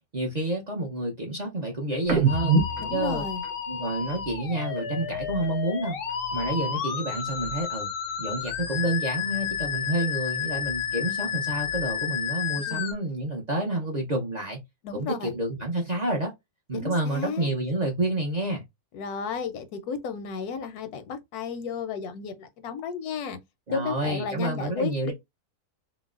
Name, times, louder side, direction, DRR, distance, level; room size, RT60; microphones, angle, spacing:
voice 1, 0.1-2.6 2.9-3.2 3.7-6.0 6.3-7.9 8.2-14.6 14.9-16.3 16.7-18.6 23.7-25.1, right 1 dB, 45° right, 0.5 m, -29 dB
sound 1, 2.0-5.6 5.9-7.8 8.0-9.9 10.3-12.1, right 5 dB, 75° right, 1.4 m, -32 dB
Musical instrument, 2.3-12.9, left 8 dB, 65° left, 0.6 m, -31 dB
voice 2, 2.8-3.4 12.7-12.9 14.8-15.3 16.7-17.5 18.9-23.4 23.7-25.1, left 5 dB, 85° left, 1.1 m, -33 dB
3.9 x 2.1 x 2.4 m
omnidirectional pair, 1.6 m